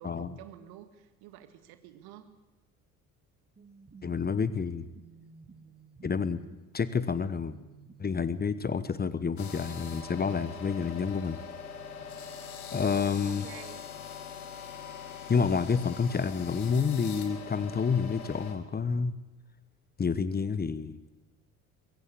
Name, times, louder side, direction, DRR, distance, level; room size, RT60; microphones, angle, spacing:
voice 1, 0.0-2.4 12.8-13.9, right 12 dB, 60° right, 10 dB, 2.1 m, -49 dB
sound 1, 3.6-10.4, right 4 dB, 20° right, 2.4 m, -53 dB
voice 2, 4.0-4.9 6.0-6.4 6.7-7.6 8.0-11.4 12.7-13.4 15.3-19.1 20.0-21.0, left 5 dB, 20° left, 14 dB, 1.1 m, -29 dB
sound 2, 9.4-18.5, left 7 dB, 75° left, 2.5 m, -43 dB
22.0 x 16.5 x 8.7 m, 1.1 s
figure-of-eight pair, 60°, 44 cm